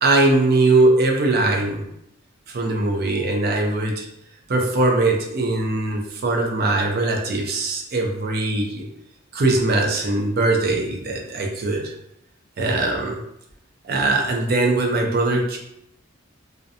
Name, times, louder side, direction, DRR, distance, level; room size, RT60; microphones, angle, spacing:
voice 1, 0.0-1.8 2.5-4.1 4.5-8.8 9.3-11.9 12.6-13.2 13.8-15.6, right 2 dB, 50° right, 1 dB, 0.4 m, -21 dB
2.4 x 2.1 x 2.6 m, 0.78 s
head